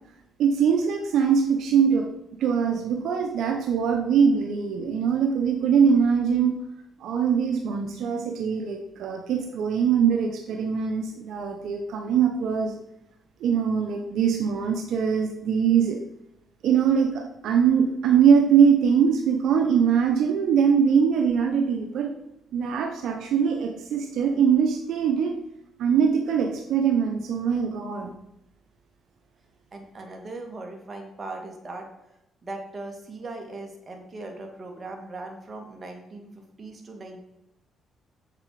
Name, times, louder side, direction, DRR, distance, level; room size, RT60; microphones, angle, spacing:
voice 1, 0.4-2.1 2.4-6.6 7.0-12.8 13.4-16.0 16.6-22.1 22.5-25.4 25.8-28.1, right 7 dB, 75° right, 3 dB, 1.0 m, -22 dB
voice 2, 29.7-31.9 32.4-37.2, right 2 dB, 35° right, 2 dB, 2.4 m, -39 dB
7.7 x 7.4 x 5.0 m, 0.85 s
cardioid pair, 90°, 0 cm